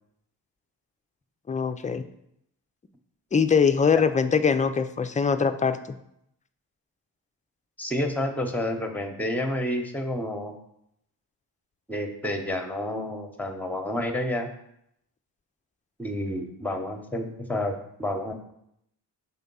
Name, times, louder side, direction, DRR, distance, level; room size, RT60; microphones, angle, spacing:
voice 1, 1.5-2.0 3.3-5.8, left 6 dB, 20° left, 8 dB, 0.3 m, -22 dB
voice 2, 7.8-10.5 11.9-14.5 16.0-18.3, left 1 dB, 5° left, 5 dB, 0.8 m, -29 dB
6.1 x 3.5 x 5.4 m, 0.76 s
cardioid pair, 90°, 44 cm